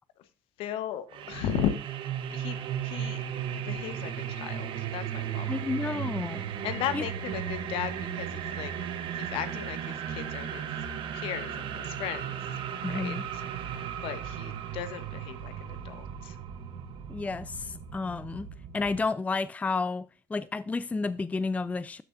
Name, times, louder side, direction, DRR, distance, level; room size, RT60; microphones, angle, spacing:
voice 1, 0.6-1.7 2.3-3.2 3.6-5.5 5.8-6.0 6.6-8.7 9.2-10.7 11.1-12.4 12.9-13.2 13.7-13.8 14.0-16.3, left 10 dB, 65° left, 1.1 m, -36 dB
sound 1, 1.1-19.1, right 9 dB, 60° right, 1.1 m, -36 dB
voice 2, 5.5-6.4 6.9-7.0 12.8-13.2 17.1-18.5 18.7-22.0, left 3 dB, 15° left, 0.4 m, -31 dB
12.5 x 6.5 x 2.6 m
hypercardioid pair, 70°, 10 cm